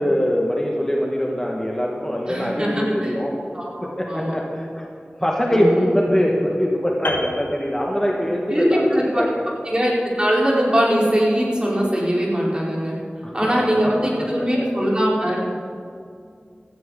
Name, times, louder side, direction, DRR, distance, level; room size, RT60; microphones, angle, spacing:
voice 1, 0.0-3.3 3.8-4.8 5.2-8.8 9.1-9.4 13.2-14.5, equal, 15° left, -2 dB, 1.8 m, -23 dB
voice 2, 2.2-3.1 3.5-4.3 5.5-5.9 8.5-9.3 9.6-13.0 13.3-15.4, equal, 25° right, -5 dB, 4.1 m, -21 dB
Piano, 7.0-8.5 8.8-9.0, left 1 dB, 75° left, 1.3 m, -31 dB
16.5 x 14.0 x 4.0 m, 2.3 s
wide cardioid pair, 45°, 4 cm